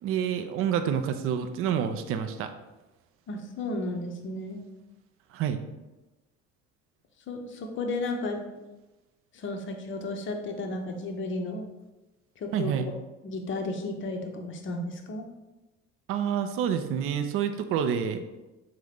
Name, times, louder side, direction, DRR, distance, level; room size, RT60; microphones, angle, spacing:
voice 1, 0.0-2.5 5.3-5.6 12.5-12.9 16.1-18.2, right 8 dB, 35° right, 8 dB, 0.4 m, -28 dB
voice 2, 3.3-4.6 7.3-8.4 9.3-11.7 12.4-12.7 13.2-15.2, left 2 dB, 30° left, 3 dB, 0.7 m, -33 dB
3.8 x 2.7 x 3.4 m, 1.1 s
figure-of-eight pair, 55°, 38 cm